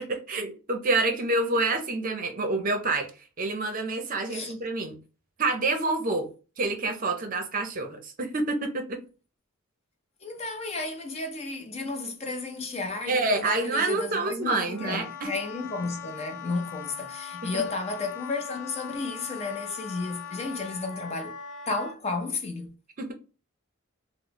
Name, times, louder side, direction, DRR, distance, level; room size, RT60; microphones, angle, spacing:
voice 1, 0.0-3.1 3.4-5.0 5.4-6.3 6.6-9.0 13.1-15.3 17.5-17.6 23.0-23.1, right 3 dB, 40° right, 0.6 m, -27 dB
voice 2, 10.2-21.4 21.7-22.7, left 3 dB, 30° left, 0.5 m, -33 dB
Wind instrument woodwind instrument, 14.4-22.0, left 7 dB, 80° left, 0.5 m, -41 dB
3.1 x 2.0 x 3.7 m
head